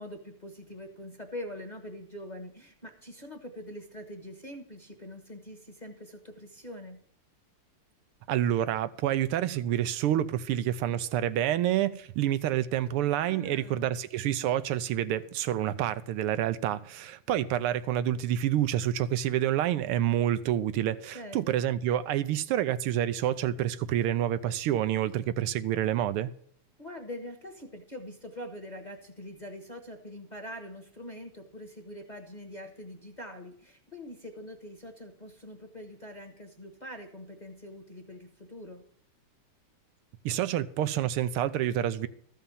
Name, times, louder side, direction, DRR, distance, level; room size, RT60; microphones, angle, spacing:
voice 1, 0.0-7.0 13.3-14.0 21.1-21.7 26.8-38.8, left 1 dB, 25° left, 1.2 m, -44 dB
voice 2, 8.3-26.3 40.2-42.1, right 11 dB, 85° right, 1.6 m, -28 dB
14.0 x 5.6 x 7.2 m
omnidirectional pair, 2.4 m